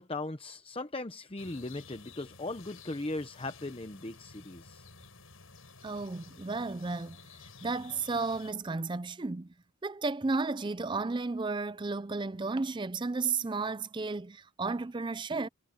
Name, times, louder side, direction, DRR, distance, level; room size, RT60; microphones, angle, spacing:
voice 1, 0.0-4.9, left 2 dB, 25° left, 0.8 m, -38 dB
sound 1, 1.4-8.5, left 4 dB, 80° left, 6.9 m, -53 dB
voice 2, 5.8-7.3 7.6-9.5 9.8-15.5, right 3 dB, 20° right, 0.4 m, -33 dB
head